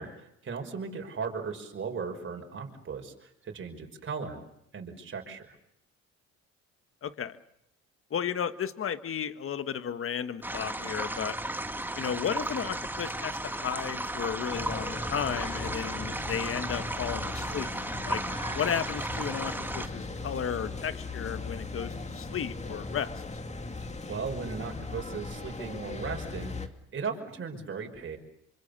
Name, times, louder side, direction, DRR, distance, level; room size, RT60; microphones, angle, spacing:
voice 1, 0.0-4.4 4.7-5.6 24.1-26.6 26.9-28.2, right 5 dB, 45° right, 3 dB, 5.8 m, -37 dB
voice 2, 7.0-7.4 8.1-11.4 12.0-17.7 18.1-18.2 18.5-23.1, left 8 dB, 45° left, 11 dB, 1.6 m, -34 dB
sound 1, 10.4-19.9, right 1 dB, 5° right, 2.0 m, -35 dB
sound 2, 14.5-26.7, left 3 dB, 25° left, 2.3 m, -38 dB
27.0 x 25.0 x 6.8 m, 0.79 s
cardioid pair, 85°, 29 cm